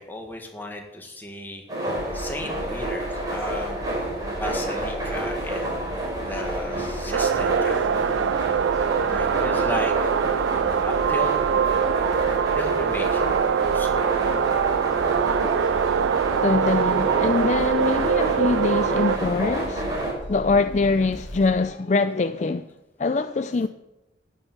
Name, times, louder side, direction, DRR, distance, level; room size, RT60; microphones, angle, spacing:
voice 1, 0.0-1.6 2.1-3.9 4.2-8.0 9.1-9.9 10.9-11.4 12.5-14.2, left 1 dB, 10° left, 1.8 m, -35 dB
sound 1, 1.7-20.1, right 1 dB, 20° right, 4.8 m, -29 dB
sound 2, 1.9-21.6, left 1 dB, 90° left, 1.7 m, -38 dB
sound 3, 7.1-19.2, right 8 dB, 85° right, 0.3 m, -23 dB
voice 2, 16.4-20.0 20.3-22.7 23.0-23.7, left 3 dB, 40° left, 0.4 m, -23 dB
12.5 x 7.4 x 9.6 m
head